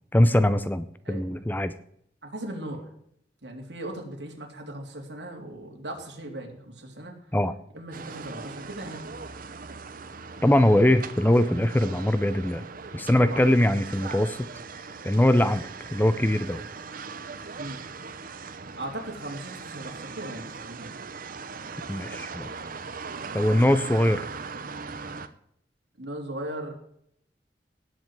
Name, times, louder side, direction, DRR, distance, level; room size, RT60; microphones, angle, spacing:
voice 1, 0.1-1.7 7.3-7.5 10.4-12.7 12.9-14.5 15.0-16.6 21.9-22.5 23.3-24.3, left 1 dB, 10° left, 13 dB, 0.5 m, -22 dB
voice 2, 1.0-1.4 2.2-2.9 3.4-7.1 7.7-9.0 13.2-13.4 17.6-17.8 18.8-20.9 26.0-26.7, right 1 dB, 70° right, 1 dB, 3.4 m, -38 dB
sound 1, 7.9-25.3, right 4 dB, 50° right, 0.9 m, -39 dB
18.0 x 7.8 x 4.8 m, 0.70 s
head